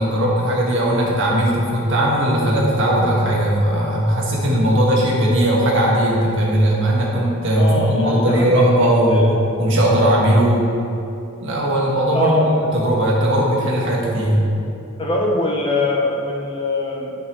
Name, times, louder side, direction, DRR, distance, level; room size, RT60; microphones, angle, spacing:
voice 1, 0.0-9.3 9.6-10.7 11.4-12.4 12.7-14.4, right 1 dB, 60° right, -4 dB, 1.6 m, -18 dB
voice 2, 7.6-8.5 9.1-9.3 12.1-12.5 15.0-17.2, left 2 dB, 25° left, -1 dB, 0.8 m, -22 dB
12.0 x 5.4 x 3.2 m, 2.7 s
head